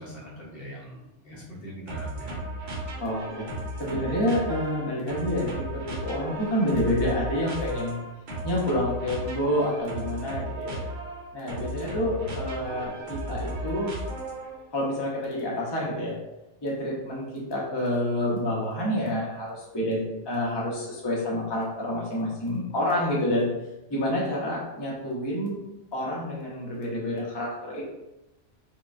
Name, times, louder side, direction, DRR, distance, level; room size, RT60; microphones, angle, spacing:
voice 1, 0.0-2.5, equal, 55° left, -4 dB, 1.0 m, -42 dB
sound 1, 1.9-14.6, right 1 dB, 65° right, 1.0 m, -35 dB
voice 2, 3.0-3.5 3.8-8.0 8.4-10.8 11.3-13.9 14.7-16.1 16.6-23.5 23.9-25.6 25.9-27.8, left 1 dB, 25° left, -5 dB, 0.7 m, -28 dB
4.7 x 2.2 x 2.6 m, 0.95 s
omnidirectional pair, 1.2 m